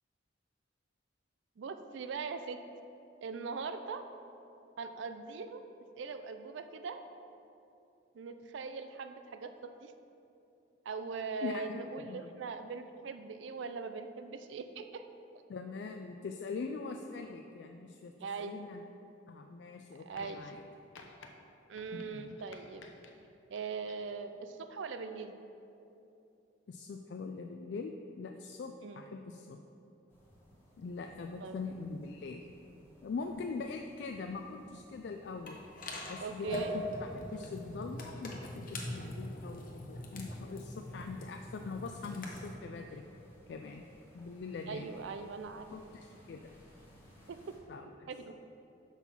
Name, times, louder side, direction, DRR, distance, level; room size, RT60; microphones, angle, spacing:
voice 1, 1.6-2.6 3.2-4.1 4.8-5.6 5.9-7.0 8.1-9.9 10.9-15.0 18.2-18.6 20.1-20.5 21.7-22.9 23.5-25.3 28.8-29.0 31.4-31.6 36.2-36.8 44.7-45.7 47.3-47.6 48.1-48.3, right 5 dB, 75° right, 9 dB, 0.4 m, -41 dB
voice 2, 11.4-12.3 15.5-18.8 19.3-20.6 21.9-22.4 26.7-29.6 30.8-32.4 33.0-35.6 36.1-36.6 37.0-43.0 43.5-43.8 44.1-44.9 45.7-46.5 47.7-48.1, left 4 dB, 60° left, 4 dB, 0.3 m, -42 dB
sound 1, 20.1-20.6 20.9-21.3 21.7-23.1 23.6-24.2 25.2-25.3, left 4 dB, 90° left, 0.7 m, -55 dB
sound 2, 30.1-47.6, equal, 15° left, 1.2 m, -61 dB
sound 3, 35.5-42.5, left 1 dB, 45° left, 0.9 m, -42 dB
5.9 x 5.7 x 5.9 m, 2.8 s
head